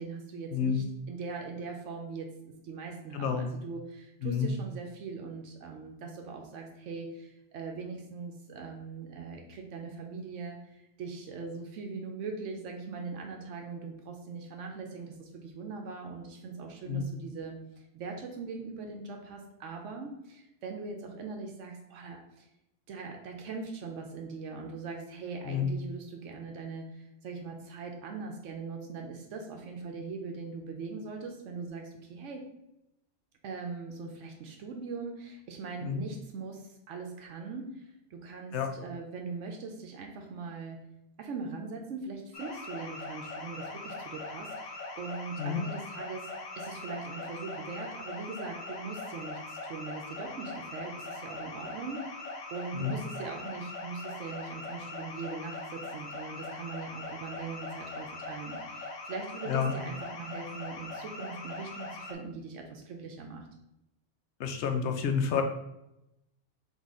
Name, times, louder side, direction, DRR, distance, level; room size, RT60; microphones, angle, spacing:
voice 1, 0.0-17.6 17.9-22.5 22.9-32.5 33.4-40.8 41.2-46.3 46.6-63.5, right 4 dB, 80° right, 2 dB, 1.0 m, -41 dB
voice 2, 3.1-3.5 4.2-4.5 16.9-17.1 25.5-25.7 35.8-36.0 38.5-38.7 45.4-45.6 52.7-52.9 59.5-59.7 64.4-65.4, left 7 dB, 70° left, 6 dB, 0.9 m, -29 dB
sound 1, 42.3-62.1, left 3 dB, 45° left, 0.6 m, -41 dB
4.0 x 3.6 x 3.6 m, 0.87 s
omnidirectional pair, 1.3 m